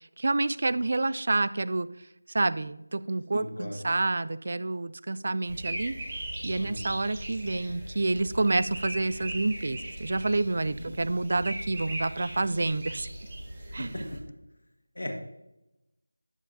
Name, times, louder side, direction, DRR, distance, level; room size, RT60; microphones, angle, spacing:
voice 1, 0.2-1.9 2.3-5.9 6.4-13.1 13.7-14.0, right 2 dB, 45° right, 16 dB, 0.4 m, -28 dB
voice 2, 3.3-3.8 6.6-6.8 10.8-10.9 13.9-14.0 15.0-15.2, left 1 dB, 70° left, 2 dB, 1.6 m, -36 dB
sound 1, 5.5-14.2, right 1 dB, 25° right, 2.1 m, -39 dB
11.5 x 7.6 x 2.7 m, 0.90 s
figure-of-eight pair, 170°, 0 cm